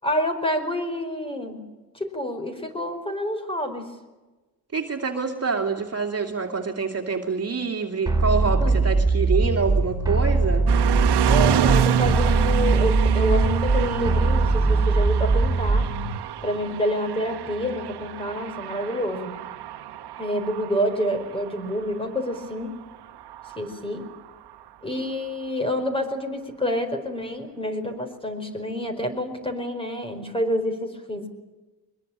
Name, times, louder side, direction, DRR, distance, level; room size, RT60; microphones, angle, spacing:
voice 1, 0.0-1.6 1.9-3.9 8.6-8.8 11.3-15.9 16.4-19.4 20.2-22.7 23.6-24.1 24.8-31.2, equal, 15° left, 7 dB, 4.9 m, -28 dB
voice 2, 4.7-10.7, right 5 dB, 40° right, 3 dB, 2.6 m, -26 dB
sound 1, 8.1-16.1, right 3 dB, 10° right, 3.7 m, -21 dB
sound 2, 10.7-24.7, right 10 dB, 85° right, 1.6 m, -28 dB
23.0 x 22.0 x 8.7 m, 1.2 s
cardioid pair, 125°, 39 cm